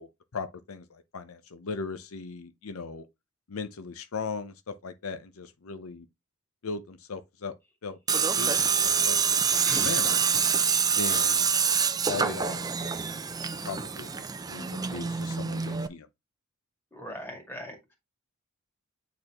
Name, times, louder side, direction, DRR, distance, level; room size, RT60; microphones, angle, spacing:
voice 1, 0.0-3.1 3.5-6.1 6.6-7.5 7.8-8.0 8.4-10.2 10.9-11.5 12.0-13.1 13.6-16.1, left 4 dB, 80° left, 0.7 m, -38 dB
Tools, 8.1-15.9, right 6 dB, 20° right, 0.4 m, -26 dB
voice 2, 9.6-9.9 10.7-10.8 16.9-17.9, equal, 10° left, 2.1 m, -40 dB
8.7 x 4.1 x 3.0 m
head